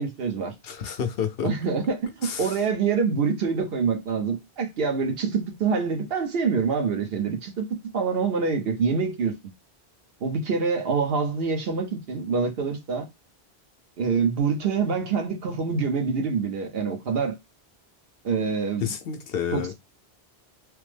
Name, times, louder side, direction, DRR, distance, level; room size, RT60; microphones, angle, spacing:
voice 1, 0.0-0.5 1.4-9.3 10.2-13.1 14.0-17.4 18.2-18.9 19.5-19.7, right 5 dB, 65° right, 1.0 m, -26 dB
voice 2, 0.6-1.5 2.2-2.6 18.8-19.7, left 8 dB, 65° left, 0.8 m, -29 dB
3.3 x 2.0 x 3.3 m
omnidirectional pair, 1.1 m